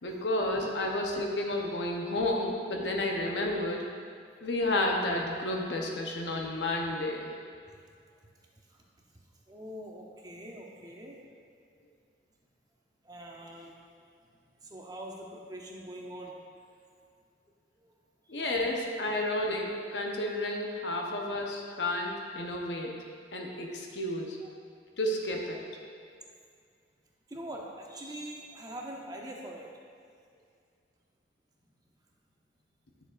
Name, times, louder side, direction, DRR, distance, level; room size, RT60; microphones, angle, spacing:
voice 1, 0.0-3.9 4.4-7.3 18.3-23.0 23.3-24.4 25.0-25.6, left 1 dB, 85° left, 1 dB, 0.9 m, -31 dB
voice 2, 9.5-11.2 13.0-13.8 14.6-16.4 17.9-18.0 18.2-18.4 24.4-24.5 27.3-29.7, right 1 dB, 20° right, -1 dB, 0.8 m, -43 dB
10.0 x 6.7 x 2.6 m, 2.2 s
head